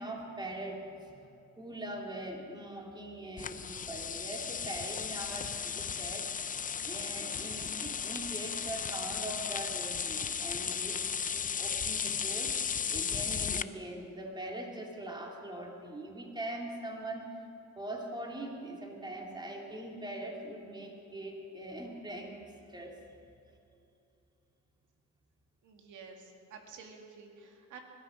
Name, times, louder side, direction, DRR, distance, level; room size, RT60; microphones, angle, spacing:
voice 1, 0.0-6.3 6.8-11.0 11.3-12.6 12.9-17.4 17.7-23.0, right 1 dB, 15° right, 0 dB, 2.8 m, -42 dB
sound 1, 3.4-13.6, left 7 dB, 30° left, 0.5 m, -35 dB
voice 2, 25.6-27.8, right 5 dB, 80° right, 3 dB, 2.3 m, -51 dB
20.5 x 13.0 x 5.2 m, 2.7 s
cardioid pair, 90°, 30 cm